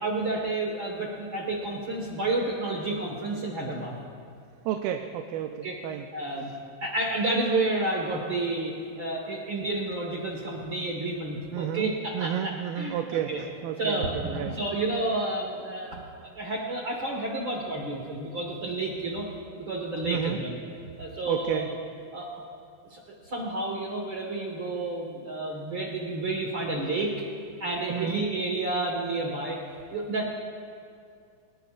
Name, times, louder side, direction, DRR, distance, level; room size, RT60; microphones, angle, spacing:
voice 1, 0.0-4.0 5.6-5.8 6.1-6.5 6.8-13.4 13.8-16.0 16.3-19.3 19.6-20.6 21.0-21.7 22.1-22.3 22.9-27.1 27.6-29.6 29.9-30.3, right 2 dB, 50° right, -1 dB, 1.6 m, -30 dB
voice 2, 4.7-6.0 11.5-14.5 20.1-20.4 21.3-21.7 27.9-28.2, right 10 dB, 80° right, 5 dB, 2.4 m, -31 dB
24.5 x 20.0 x 2.5 m, 2.4 s
omnidirectional pair, 4.2 m